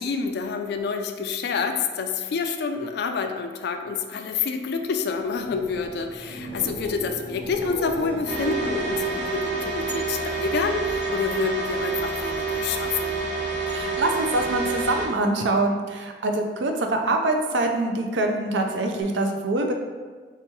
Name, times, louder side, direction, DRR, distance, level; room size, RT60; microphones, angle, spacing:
voice 1, 0.0-13.1, left 5 dB, 60° left, 5 dB, 0.3 m, -28 dB
sound 1, 5.3-11.0 11.4-11.9 19.0-19.1, right 2 dB, 30° right, 1.0 m, -37 dB
sound 2, 8.3-15.1, right 3 dB, 70° right, 1.3 m, -28 dB
voice 2, 13.7-19.7, right 2 dB, 85° right, 3 dB, 0.5 m, -24 dB
3.4 x 2.9 x 4.4 m, 1.5 s
head